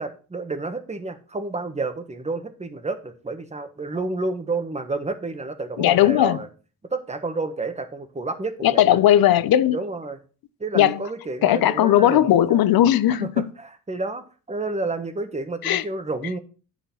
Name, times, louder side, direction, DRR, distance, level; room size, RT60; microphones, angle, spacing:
voice 1, 0.0-6.5 6.9-9.0 9.7-10.2 10.6-12.6 13.1-16.4, right 3 dB, 20° right, 1.2 m, -30 dB
voice 2, 5.8-6.4 8.6-9.8 10.7-11.0 11.4-13.4 15.6-15.8, left 12 dB, 80° left, 0.7 m, -17 dB
9.6 x 6.0 x 4.2 m
cardioid pair, 115°, 36 cm